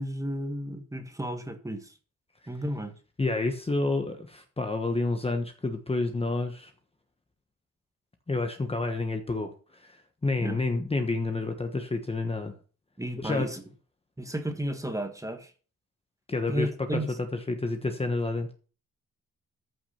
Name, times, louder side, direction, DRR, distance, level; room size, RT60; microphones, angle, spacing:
voice 1, 0.0-1.9 2.5-2.9 10.4-10.6 13.0-13.6 14.2-15.5 16.5-17.1, right 1 dB, 10° right, 1.7 m, -33 dB
voice 2, 3.2-6.7 8.3-12.5 13.2-13.5 16.3-17.0 17.3-18.5, left 2 dB, 20° left, 1.2 m, -29 dB
14.0 x 6.2 x 5.8 m
wide cardioid pair, 150°, 33 cm